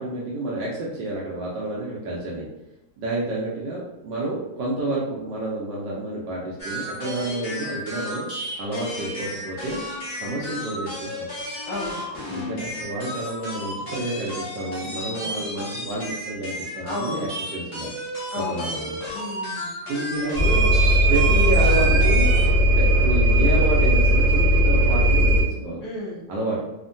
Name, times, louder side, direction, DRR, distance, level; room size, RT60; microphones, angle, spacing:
voice 1, 0.0-2.4 3.0-8.3 8.6-9.8 10.1-11.3 12.3-17.9 18.5-19.0 19.9-20.7 21.1-22.3 22.6-25.8 26.3-26.6, right 2 dB, 75° right, -4 dB, 1.0 m, -29 dB
sound 1, 6.6-22.5, left 1 dB, 45° left, 1.1 m, -33 dB
voice 2, 11.6-12.0 14.8-15.4 16.8-17.3 18.3-18.7 19.1-19.7 25.8-26.2, left 1 dB, 75° left, -7 dB, 0.8 m, -33 dB
sound 2, 20.3-25.4, right 1 dB, 35° right, 0.6 m, -17 dB
3.5 x 2.1 x 2.5 m, 0.95 s
omnidirectional pair, 2.4 m